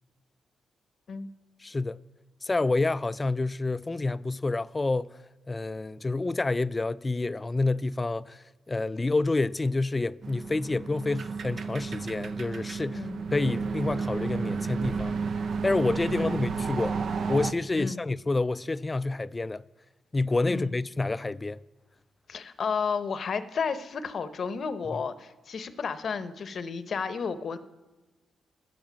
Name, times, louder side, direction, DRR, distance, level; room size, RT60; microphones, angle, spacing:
voice 1, 1.6-2.0 2.4-5.2 5.5-13.1 13.3-15.1 15.6-17.0 17.3-19.6 20.1-21.6, left 3 dB, 30° left, 0.3 m, -28 dB
sound 1, 10.2-17.5, right 5 dB, 65° right, 0.6 m, -32 dB
voice 2, 16.0-16.5 17.8-18.0 20.5-20.7 22.3-27.6, left 5 dB, 60° left, 0.8 m, -32 dB
13.0 x 10.5 x 5.1 m
supercardioid pair, 50°, 0 cm